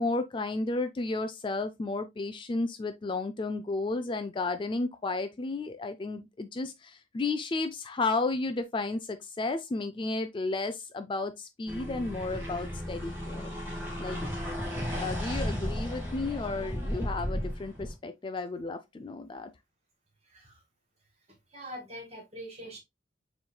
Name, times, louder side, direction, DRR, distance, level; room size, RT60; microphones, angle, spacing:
voice 1, 0.0-13.5 14.0-14.2 15.0-19.5, left 3 dB, 25° left, 0.3 m, -33 dB
sound 1, 11.7-17.9, equal, 10° right, 1.6 m, -34 dB
voice 2, 20.2-20.6 21.3-22.8, equal, 35° right, 2.1 m, -44 dB
7.1 x 3.2 x 2.2 m
head